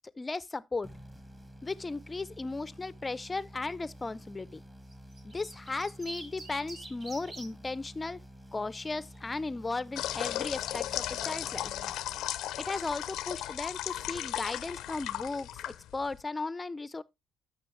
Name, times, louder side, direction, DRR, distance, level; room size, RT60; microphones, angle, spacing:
voice 1, 0.2-0.9 1.6-4.6 5.2-8.2 8.5-11.7 12.6-17.0, left 3 dB, 25° left, 0.5 m, -36 dB
sound 1, 0.8-12.6, equal, 10° right, 1.5 m, -51 dB
sound 2, 4.9-7.5 8.7-9.2, right 2 dB, 50° right, 2.4 m, -46 dB
sound 3, 10.0-16.2, left 13 dB, 85° left, 0.5 m, -36 dB
13.0 x 5.9 x 3.1 m
cardioid pair, 90°, 0 cm